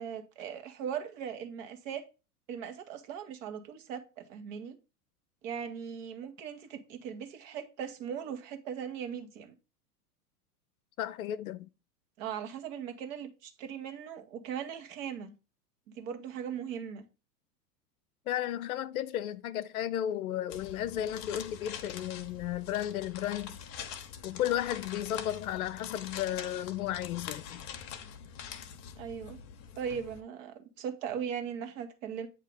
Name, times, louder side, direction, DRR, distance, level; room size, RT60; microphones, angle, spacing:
voice 1, 0.0-2.0 2.5-4.8 5.4-9.5 12.2-15.3 15.9-17.0 29.0-29.4 29.7-32.3, right 8 dB, 50° right, 1.3 m, -39 dB
voice 2, 11.0-11.7 18.3-23.6 24.2-27.6, left 12 dB, 60° left, 0.6 m, -34 dB
sound 1, 20.5-30.2, left 8 dB, 35° left, 0.8 m, -44 dB
8.3 x 2.9 x 5.1 m
figure-of-eight pair, 90°, 48 cm